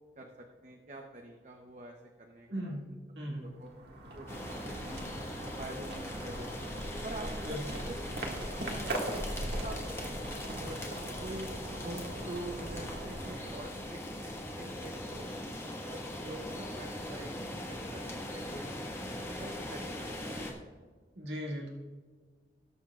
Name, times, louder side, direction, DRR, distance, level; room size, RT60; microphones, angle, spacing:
voice 1, 0.2-3.0 3.3-3.7 4.1-4.8 5.6-6.7 7.0-7.9 8.4-11.5 11.8-15.3 15.6-20.6, right 1 dB, 40° right, 2 dB, 0.8 m, -46 dB
voice 2, 2.5-2.9 3.2-3.4 7.5-7.6 21.2-21.7, equal, 85° right, -2 dB, 1.9 m, -37 dB
sound 1, 3.5-14.2, right 1 dB, 70° right, 1.8 m, -40 dB
sound 2, 4.3-20.5, left 1 dB, 15° left, 1.3 m, -41 dB
19.0 x 7.1 x 2.4 m, 1.5 s
head